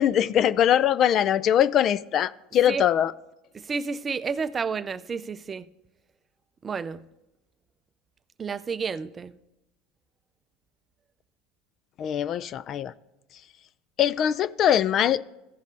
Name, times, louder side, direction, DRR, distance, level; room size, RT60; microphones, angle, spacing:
voice 1, 0.0-3.1 12.0-12.9 14.0-15.3, left 10 dB, 45° left, 0.3 m, -22 dB
voice 2, 3.5-5.7 6.6-7.0 8.4-9.4, right 5 dB, 25° right, 0.4 m, -31 dB
15.0 x 5.3 x 3.9 m
supercardioid pair, 110°, 0 cm